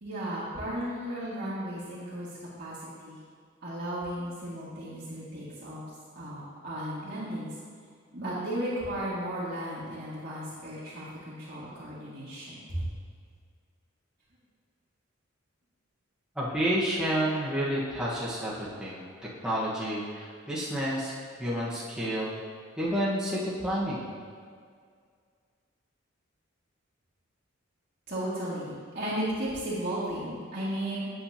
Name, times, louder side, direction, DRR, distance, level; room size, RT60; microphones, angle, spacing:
voice 1, 0.0-2.3 2.6-2.8 3.0-3.2 3.6-5.8 6.2-7.5 8.1-12.8 28.1-31.1, right 1 dB, 55° right, -11 dB, 2.0 m, -35 dB
voice 2, 16.3-19.0 19.4-22.4 22.8-24.0, equal, 5° right, -9 dB, 1.3 m, -30 dB
8.6 x 7.8 x 2.9 m, 2.1 s
head